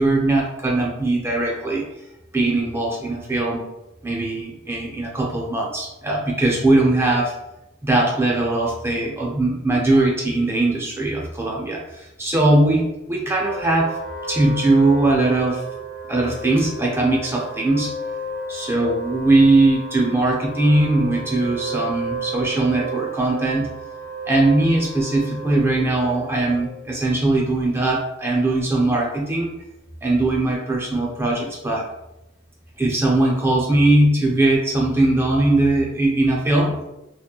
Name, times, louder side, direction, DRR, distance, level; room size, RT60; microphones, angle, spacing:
voice 1, 0.0-1.9 2.3-3.6 4.0-7.3 7.8-14.0 14.3-15.6 16.1-18.0 18.5-23.7 24.3-29.5 30.0-31.8 32.8-36.8, right 2 dB, 15° right, -3 dB, 0.5 m, -20 dB
Wind instrument woodwind instrument, 13.4-26.8, right 4 dB, 80° right, 0.8 m, -33 dB
2.8 x 2.1 x 2.3 m, 0.92 s
head